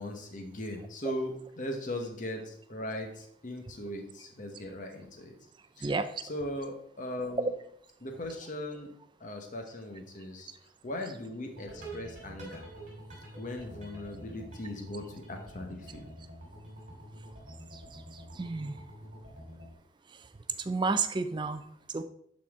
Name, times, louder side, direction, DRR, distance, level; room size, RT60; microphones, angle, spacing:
voice 1, 0.0-5.3 5.8-5.9 6.2-7.5 8.0-8.9 9.2-10.5 10.8-12.6 13.4-16.1, left 1 dB, 40° left, 3 dB, 1.0 m, -39 dB
sound 1, 11.5-19.7, right 1 dB, 40° right, 3.1 m, -47 dB
voice 2, 17.7-18.8 20.1-20.3 20.6-22.0, right 3 dB, 25° right, 10 dB, 0.3 m, -32 dB
11.0 x 4.2 x 3.5 m, 0.68 s
head